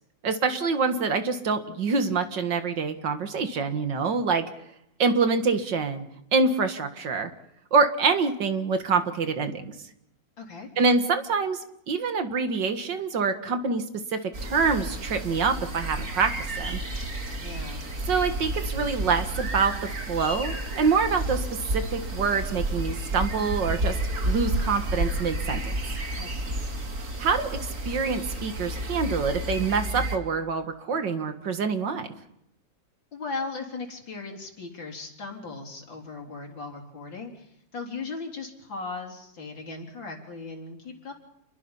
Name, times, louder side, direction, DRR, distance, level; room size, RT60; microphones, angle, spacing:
voice 1, 0.2-4.4 5.0-6.1 6.3-7.3 7.7-9.7 10.8-11.6 11.9-13.8 14.1-16.8 18.1-21.5 21.7-24.0 24.2-25.6 27.2-32.1, right 4 dB, 70° right, 8 dB, 2.3 m, -25 dB
voice 2, 10.4-10.7 17.4-17.8 26.2-26.7 33.1-41.1, left 3 dB, 80° left, 2 dB, 4.5 m, -38 dB
sound 1, 14.3-30.2, right 1 dB, 45° right, 2.5 m, -31 dB
28.5 x 22.0 x 5.6 m, 0.81 s
omnidirectional pair, 2.0 m